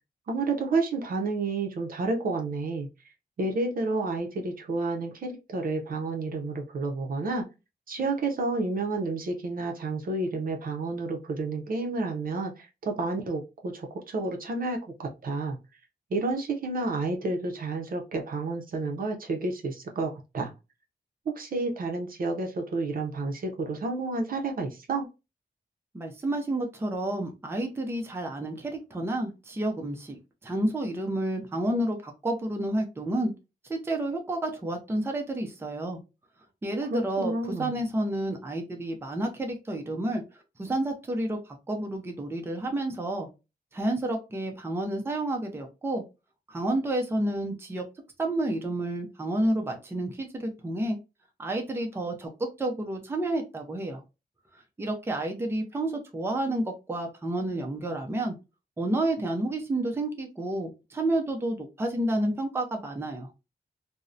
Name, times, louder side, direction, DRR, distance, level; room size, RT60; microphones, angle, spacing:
voice 1, 0.3-2.9 3.4-7.4 7.9-15.6 16.1-20.5 21.3-25.1 36.9-37.8, right 3 dB, 60° right, 3 dB, 0.5 m, -30 dB
voice 2, 25.9-33.3 33.7-36.0 36.6-37.3 37.6-40.2 40.6-41.4 41.7-43.3 43.7-46.0 46.5-47.8 48.2-51.0 51.4-54.0 54.8-58.3 58.8-63.3, right 1 dB, 15° right, 2 dB, 0.4 m, -30 dB
2.6 x 2.0 x 2.3 m, 0.27 s
wide cardioid pair, 150°, 17 cm